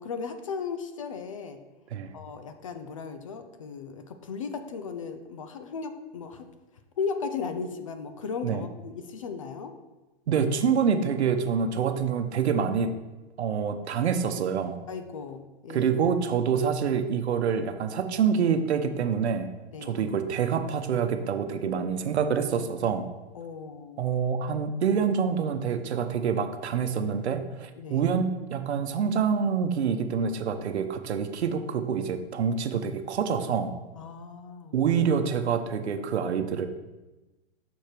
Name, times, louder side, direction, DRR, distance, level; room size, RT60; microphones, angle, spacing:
voice 1, 0.0-1.6 2.1-6.5 7.0-9.7 14.9-15.9 16.6-16.7 19.7-20.0 23.3-24.0 27.8-28.1 34.0-34.7, left 5 dB, 30° left, 8 dB, 0.4 m, -36 dB
voice 2, 10.3-12.9 13.4-14.8 15.7-19.5 19.8-23.1 24.0-33.7 34.7-36.7, right 6 dB, 85° right, 8 dB, 0.9 m, -26 dB
6.3 x 4.5 x 4.9 m, 1.1 s
hypercardioid pair, 165°, 33 cm